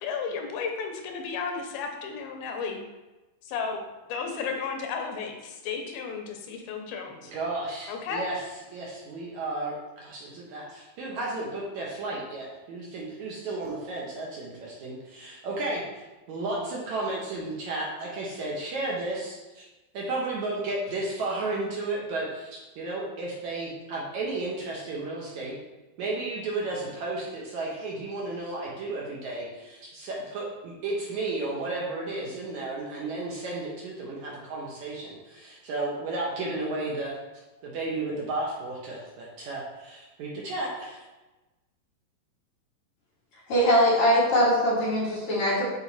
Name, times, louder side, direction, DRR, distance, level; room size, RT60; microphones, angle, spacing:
voice 1, 0.0-2.8 3.4-3.8 4.1-7.3 7.9-8.3, left 5 dB, 85° left, 3 dB, 2.6 m, -33 dB
voice 2, 7.2-8.4 8.7-15.8 16.3-19.7 19.9-25.6 26.0-37.1 37.6-41.0, right 2 dB, 65° right, -4 dB, 2.1 m, -33 dB
voice 3, 43.5-45.6, equal, 55° left, -6 dB, 2.8 m, -22 dB
6.9 x 4.4 x 4.1 m, 1.1 s
omnidirectional pair, 4.2 m